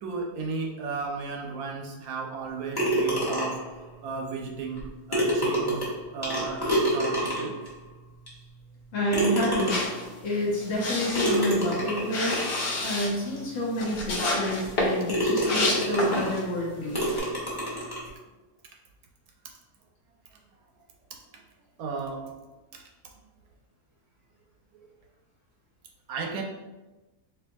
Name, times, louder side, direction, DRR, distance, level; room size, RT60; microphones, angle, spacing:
voice 1, 0.0-3.6 4.0-4.8 5.1-5.8 6.1-7.6 21.8-22.3 22.7-22.8 26.1-26.4, right 4 dB, 75° right, 1 dB, 1.0 m, -34 dB
sound 1, 2.8-3.7 4.8-4.9 5.1-7.7 8.3-8.4 9.1-10.1 11.2-12.7 13.4-13.5 14.0-14.1 14.6-14.8 15.1-16.4 16.9-18.1, right 1 dB, 20° left, 0.7 m, -27 dB
voice 2, 8.9-9.8 10.2-12.4 12.8-17.0, left 1 dB, 60° left, -4 dB, 1.1 m, -28 dB
sound 2, 9.6-16.5 16.9-17.2, left 2 dB, 85° left, 1.4 m, -30 dB
4.4 x 2.6 x 2.6 m, 1.1 s
omnidirectional pair, 1.7 m